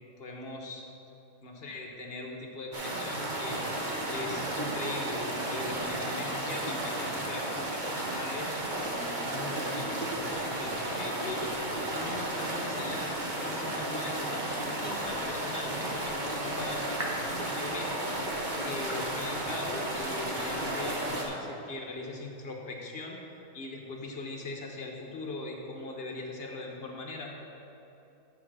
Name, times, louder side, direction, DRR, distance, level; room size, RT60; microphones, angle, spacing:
voice 1, 0.2-0.9 1.4-13.1 13.4-23.2 23.5-27.3, left 2 dB, 40° left, 0 dB, 1.0 m, -40 dB
sound 1, 2.7-21.3, right 1 dB, 35° right, 0.9 m, -33 dB
10.5 x 4.0 x 6.0 m, 2.9 s
omnidirectional pair, 1.8 m